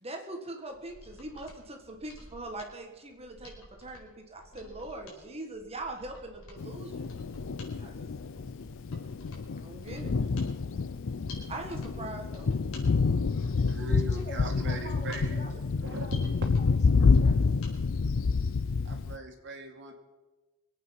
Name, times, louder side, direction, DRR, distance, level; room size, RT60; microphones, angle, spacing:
voice 1, 0.0-7.1 7.8-8.2 9.5-10.3 11.5-12.5 13.0-13.5, right 2 dB, 30° right, 4 dB, 1.5 m, -42 dB
Mechanisms, 0.7-17.7 18.1-18.2, left 1 dB, 80° left, 4.4 m, -51 dB
voice 2, 4.5-5.3 7.7-8.0 13.9-16.3 16.6-17.5, left 1 dB, 35° left, 4 dB, 2.3 m, -47 dB
Thunder, 6.6-19.2, left 4 dB, 65° left, 0.5 m, -28 dB
voice 3, 11.3-12.1 13.0-15.5 15.8-16.2 18.8-19.9, right 2 dB, 55° right, 3 dB, 2.3 m, -41 dB
24.0 x 8.7 x 5.8 m, 1.1 s
head